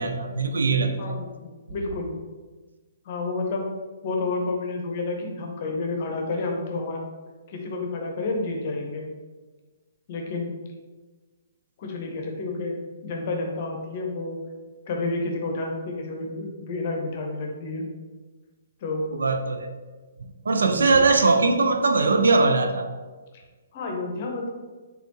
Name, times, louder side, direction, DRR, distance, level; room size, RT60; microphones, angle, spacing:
voice 1, 0.0-1.1 19.1-19.7 20.5-22.9, right 3 dB, 65° right, 6 dB, 0.4 m, -21 dB
voice 2, 1.0-2.1 3.0-3.7 4.0-7.0 7.5-9.1 10.1-10.5 11.8-14.4 14.9-17.9 18.8-19.1 20.7-21.1 23.7-24.5, left 3 dB, 40° left, 2 dB, 0.8 m, -30 dB
4.1 x 3.5 x 2.9 m, 1.3 s
figure-of-eight pair, 125°, 0 cm